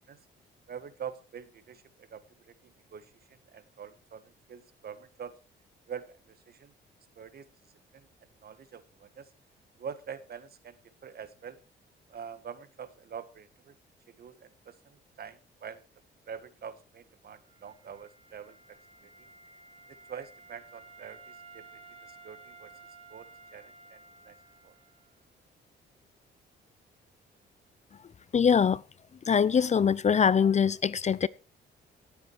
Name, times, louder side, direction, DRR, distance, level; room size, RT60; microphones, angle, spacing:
voice 1, 0.7-5.4 5.9-6.7 7.1-7.5 7.9-8.1 8.4-9.3 9.8-11.6 12.1-13.7 14.1-15.8 16.3-18.6 19.0-19.3 19.9-22.7 23.1-24.4 24.6-24.7, right 7 dB, 50° right, 1.6 m, -45 dB
Wind instrument woodwind instrument, 17.4-25.2, right 3 dB, 30° right, 4.9 m, -54 dB
voice 2, 28.3-28.8 29.2-31.3, left 7 dB, 35° left, 0.5 m, -23 dB
17.5 x 7.8 x 4.6 m
cardioid pair, 90°, 20 cm